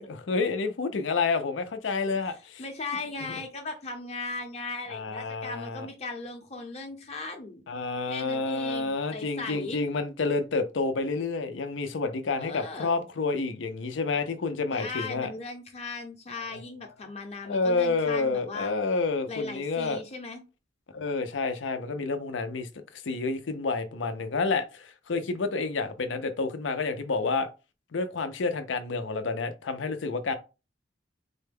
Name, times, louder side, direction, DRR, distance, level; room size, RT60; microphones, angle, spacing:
voice 1, 0.0-2.6 3.3-3.4 4.9-5.9 7.7-15.3 16.5-16.6 17.5-20.0 20.9-27.5 27.9-30.3, left 3 dB, 85° left, 0.6 m, -29 dB
voice 2, 2.6-7.6 8.1-9.8 12.4-13.0 14.7-18.7 19.3-20.4, left 3 dB, 35° left, 0.7 m, -38 dB
4.1 x 2.2 x 3.4 m
head